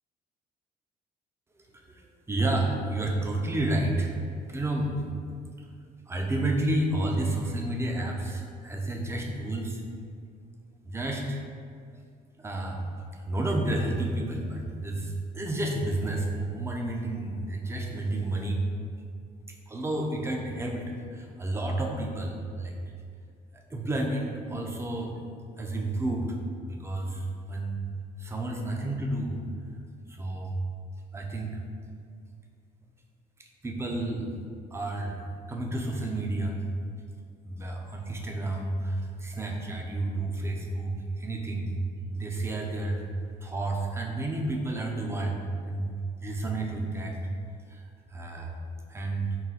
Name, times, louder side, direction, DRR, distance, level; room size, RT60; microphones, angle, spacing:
voice 1, 1.9-4.1 4.5-5.0 6.1-9.8 10.9-11.4 12.4-12.8 13.1-18.6 19.7-22.8 23.5-25.1 25.6-26.4 26.6-27.8 28.2-29.4 30.1-30.6 31.1-31.6 33.6-34.3 34.7-35.2 35.5-36.6 37.4-41.8 42.1-43.0 43.4-45.9 46.2-47.2 47.7-47.8 48.1-48.5 48.9-49.3, right 2 dB, 15° right, 1 dB, 0.5 m, -30 dB
3.9 x 2.2 x 4.0 m, 2.2 s
cardioid pair, 110°, 17 cm